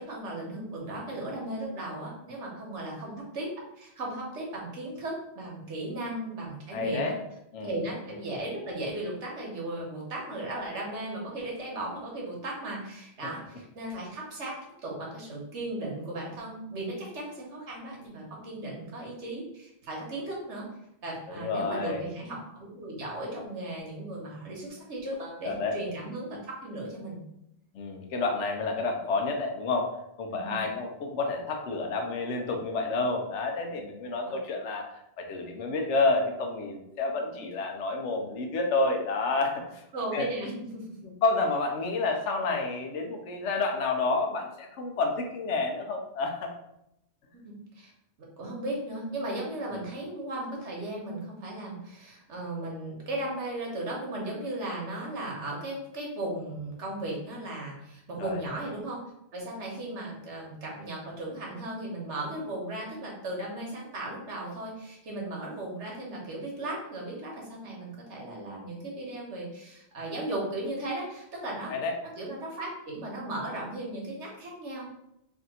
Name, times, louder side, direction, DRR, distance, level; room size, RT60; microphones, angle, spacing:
voice 1, 0.0-3.5 3.8-7.1 7.6-20.7 21.0-27.2 30.3-30.6 34.2-34.4 39.9-41.0 47.3-47.9 48.4-71.8 72.2-74.9, right 1 dB, 85° right, -2 dB, 1.4 m, -36 dB
voice 2, 6.7-7.1 7.5-7.7 21.3-22.0 25.4-25.7 27.7-29.9 30.2-34.9 35.2-39.8 40.1-40.3 41.0-46.5 49.7-49.8 58.2-58.4 71.7-71.9, left 3 dB, 90° left, 3 dB, 1.0 m, -29 dB
3.4 x 2.6 x 4.1 m, 0.81 s
omnidirectional pair, 1.2 m